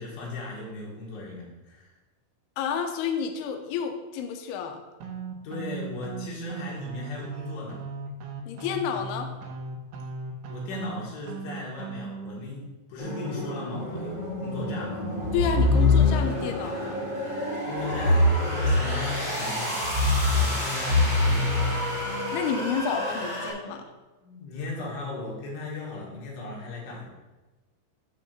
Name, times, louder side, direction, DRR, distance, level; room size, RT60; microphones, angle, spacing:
voice 1, 0.0-1.9 5.4-7.9 10.5-15.0 17.7-20.0 20.3-21.9 24.2-27.1, left 2 dB, 75° left, -4 dB, 4.2 m, -37 dB
voice 2, 2.6-4.8 8.5-9.3 15.3-17.0 22.3-23.8, left 7 dB, 90° left, 4 dB, 2.3 m, -30 dB
sound 1, 5.0-12.4, right 4 dB, 80° right, 2.5 m, -37 dB
sound 2, 13.0-23.5, equal, 10° left, 1.7 m, -32 dB
sound 3, 15.2-16.5 17.9-19.3 19.8-22.3, left 3 dB, 50° right, 1.5 m, -23 dB
8.5 x 3.7 x 6.6 m, 1.1 s
omnidirectional pair, 5.6 m